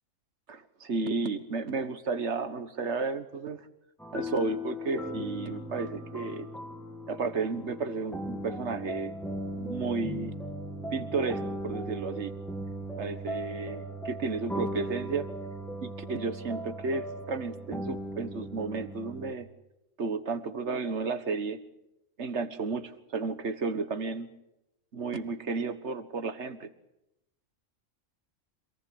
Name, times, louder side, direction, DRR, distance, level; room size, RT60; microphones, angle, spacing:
voice 1, 0.5-3.7 4.1-6.5 7.1-9.2 9.6-10.4 10.9-12.3 13.0-15.3 15.8-19.5 20.0-21.6 22.2-24.3 24.9-26.7, right 4 dB, 60° right, 11 dB, 1.8 m, -33 dB
sound 1, 4.0-19.3, equal, ahead, 1.9 m, -38 dB
26.5 x 18.5 x 8.8 m, 0.88 s
omnidirectional pair, 1.3 m